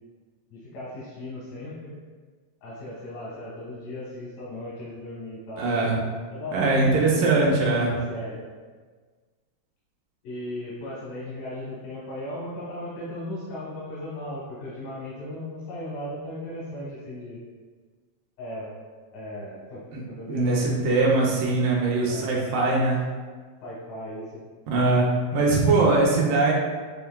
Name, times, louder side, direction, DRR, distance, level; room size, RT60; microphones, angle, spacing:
voice 1, 0.5-1.9 2.6-5.9 6.3-8.4 10.2-17.4 18.4-18.7 19.1-20.8 22.0-22.3 23.6-24.4, left 1 dB, 85° left, -7 dB, 2.5 m, -37 dB
voice 2, 5.6-6.0 6.5-7.9 19.9-20.0 20.3-23.0 24.7-25.0 25.3-26.5, right 3 dB, 80° right, -3 dB, 2.3 m, -21 dB
7.0 x 3.4 x 2.2 m, 1.5 s
omnidirectional pair, 3.7 m